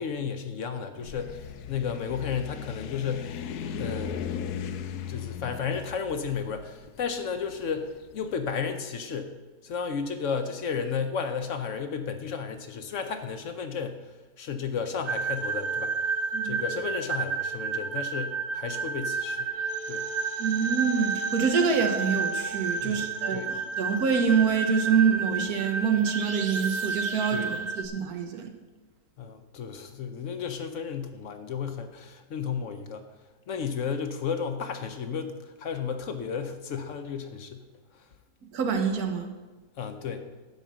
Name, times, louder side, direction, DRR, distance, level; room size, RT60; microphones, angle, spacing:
voice 1, 0.0-3.4 3.8-4.2 5.1-9.3 9.6-14.0 14.4-16.0 16.4-19.5 19.9-20.1 22.8-23.5 27.3-27.5 29.2-33.1 33.5-37.6 37.9-38.1 39.8-40.3, left 6 dB, 60° left, 8 dB, 0.9 m, -33 dB
sound 1, 1.0-8.1, left 7 dB, 85° left, 1.1 m, -37 dB
sound 2, 15.1-27.9, right 5 dB, 90° right, 0.3 m, -31 dB
voice 2, 20.4-28.5 38.5-39.3, right 6 dB, 70° right, 5 dB, 1.5 m, -26 dB
11.0 x 4.2 x 7.4 m, 1.3 s
omnidirectional pair, 1.6 m